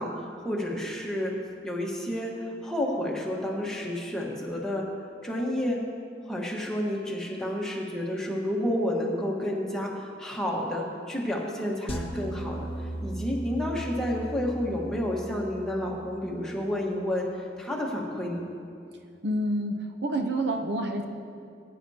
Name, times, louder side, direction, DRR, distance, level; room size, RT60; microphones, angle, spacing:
voice 1, 0.0-1.3 1.6-2.3 2.6-4.9 5.2-5.8 6.2-12.7 13.0-18.4, left 1 dB, 5° left, -3 dB, 1.3 m, -30 dB
sound 1, 11.9-16.2, right 1 dB, 30° left, 0.9 m, -37 dB
voice 2, 19.2-19.7 20.0-21.0, right 1 dB, 75° right, 4 dB, 0.8 m, -27 dB
19.5 x 9.5 x 2.8 m, 2.4 s
head